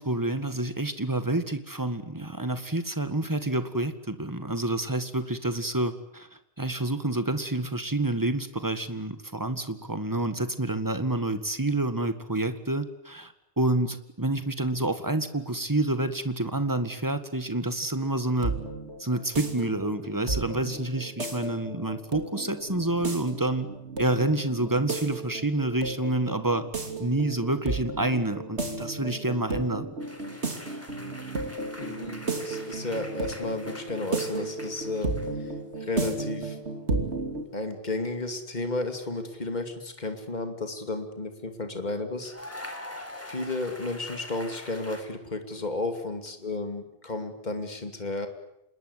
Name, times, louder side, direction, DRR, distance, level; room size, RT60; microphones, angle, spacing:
voice 1, 0.0-6.3 6.6-18.5 19.0-23.7 24.0-26.6 27.0-29.9, right 2 dB, 20° right, 10 dB, 1.9 m, -28 dB
sound 1, 18.0-37.4, right 2 dB, 90° right, 3.3 m, -34 dB
sound 2, 30.0-35.5 35.8-36.2 38.1-38.3 42.2-45.0, left 1 dB, 15° left, 3.8 m, -44 dB
voice 2, 31.8-35.5 35.8-36.6 37.5-42.3 43.3-48.3, left 2 dB, 40° left, 6 dB, 2.8 m, -33 dB
27.0 x 21.5 x 9.7 m, 0.81 s
omnidirectional pair, 1.1 m